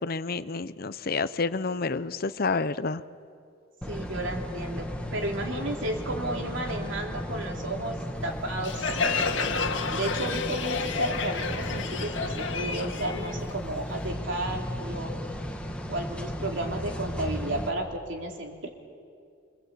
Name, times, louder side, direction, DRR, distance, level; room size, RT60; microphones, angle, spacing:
voice 1, 0.0-3.0, left 4 dB, 50° left, 14 dB, 0.7 m, -29 dB
sound 1, 3.8-17.7, equal, 5° left, 1.6 m, -35 dB
voice 2, 3.9-4.9 5.1-8.0 8.2-9.0 9.9-15.2 15.9-18.7, right 1 dB, 70° right, 1 dB, 3.4 m, -33 dB
Crowd, 8.6-14.1, left 4 dB, 75° left, 1.8 m, -30 dB
26.0 x 25.0 x 8.4 m, 2.4 s
head